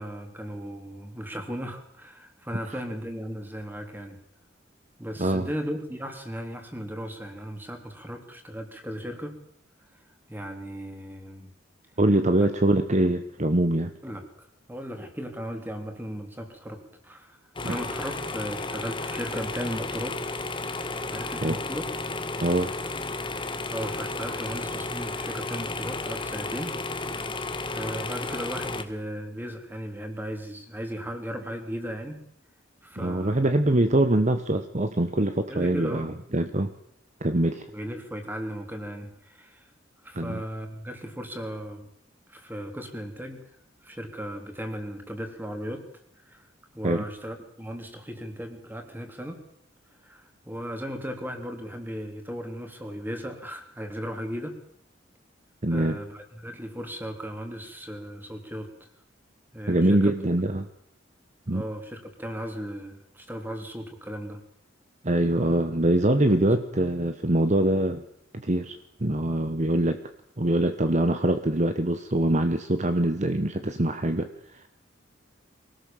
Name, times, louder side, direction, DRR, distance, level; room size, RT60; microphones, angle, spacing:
voice 1, 0.0-4.2 5.0-9.4 10.3-11.5 12.4-12.5 14.0-14.3 14.7-17.4 17.6-20.2 21.1-21.9 23.3-26.8 27.2-32.2 32.8-33.5 35.5-36.1 37.7-39.7 40.0-41.9 42.3-43.4 43.8-45.9 46.2-46.4 46.7-49.4 50.0-54.6 55.7-58.9 59.5-60.1 61.5-64.4, equal, 10° right, 4 dB, 3.5 m, -36 dB
voice 2, 12.0-13.9 17.6-17.8 21.4-21.6 22.4-22.7 33.0-36.7 37.2-37.7 40.1-40.4 46.8-47.0 55.6-56.0 59.7-60.7 61.5-61.6 65.0-68.0 68.3-70.0 70.4-74.7, right 1 dB, 40° right, 8 dB, 1.1 m, -24 dB
sound 1, 17.6-28.8, left 3 dB, 25° left, 1.6 m, -33 dB
24.5 x 18.5 x 7.4 m, 0.69 s
head